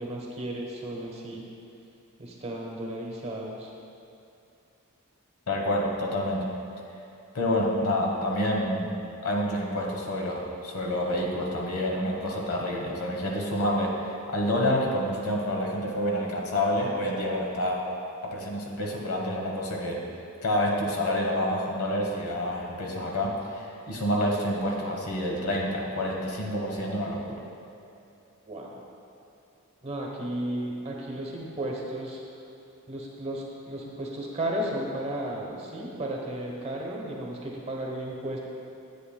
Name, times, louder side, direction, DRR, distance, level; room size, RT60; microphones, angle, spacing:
voice 1, 0.0-1.5 2.2-3.7 28.5-28.8 29.8-32.2 32.9-38.4, right 1 dB, 30° right, -2 dB, 0.9 m, -34 dB
voice 2, 5.5-6.5 7.3-17.9 18.2-20.1 20.4-27.4, left 1 dB, 80° left, -1 dB, 1.2 m, -28 dB
10.0 x 8.2 x 2.2 m, 2.8 s
head